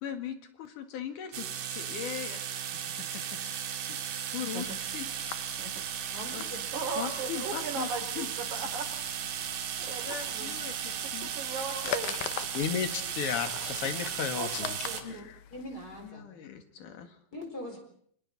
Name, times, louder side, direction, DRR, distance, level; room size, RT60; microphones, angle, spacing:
voice 1, 0.0-2.8 3.9-4.0 4.3-5.1 6.3-6.7 7.0-7.9 8.2-8.3 10.1-11.3 16.0-17.2, left 9 dB, 65° left, 6 dB, 3.3 m, -40 dB
sound 1, 1.3-15.0, right 8 dB, 75° right, 3.3 m, -36 dB
voice 2, 4.4-4.8 5.6-5.7 6.7-8.9 9.8-10.7 11.0-12.2 14.8-15.3, right 4 dB, 60° right, 4 dB, 4.6 m, -38 dB
sound 2, 4.6-16.1, left 11 dB, 85° left, 2.8 m, -43 dB
voice 3, 6.1-6.6 14.4-14.5 15.0-15.1 15.5-16.2 17.3-17.8, equal, 25° left, 2 dB, 4.9 m, -40 dB
voice 4, 12.5-14.9, left 7 dB, 50° left, 7 dB, 2.2 m, -32 dB
30.0 x 25.0 x 4.2 m, 0.63 s
omnidirectional pair, 4.1 m